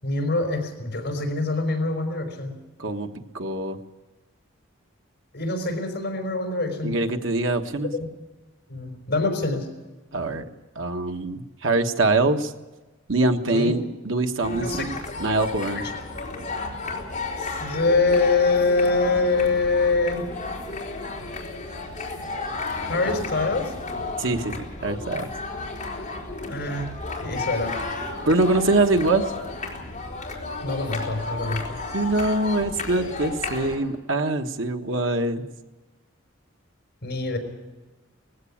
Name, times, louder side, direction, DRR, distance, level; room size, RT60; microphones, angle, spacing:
voice 1, 0.0-2.5 5.3-6.9 7.9-8.1 8.7-9.7 13.5-13.8 14.6-14.8 15.3-15.8 17.4-20.2 22.8-23.7 26.5-26.9 27.2-27.7 30.6-31.8 37.0-37.4, left 3 dB, 55° left, 4 dB, 5.0 m, -24 dB
voice 2, 2.8-3.8 6.8-7.9 10.1-10.4 10.7-12.5 13.1-15.9 24.2-25.3 28.3-29.3 31.9-35.4, right 2 dB, 75° right, 5 dB, 1.4 m, -24 dB
sound 1, 14.4-33.8, left 3 dB, 35° left, 4.1 m, -33 dB
19.5 x 16.0 x 8.6 m, 1.2 s
head